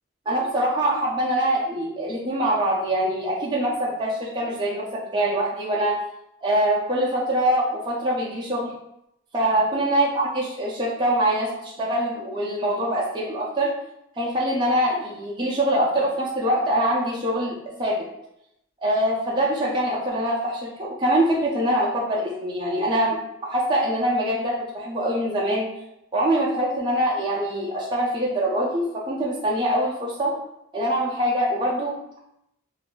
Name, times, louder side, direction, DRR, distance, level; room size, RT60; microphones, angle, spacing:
voice 1, 0.3-6.0 6.4-8.7 9.3-13.7 14.2-18.0 18.8-25.7 26.1-30.3 30.7-32.2, right 1 dB, 20° right, -5 dB, 0.5 m, -24 dB
2.6 x 2.3 x 3.8 m, 0.82 s
head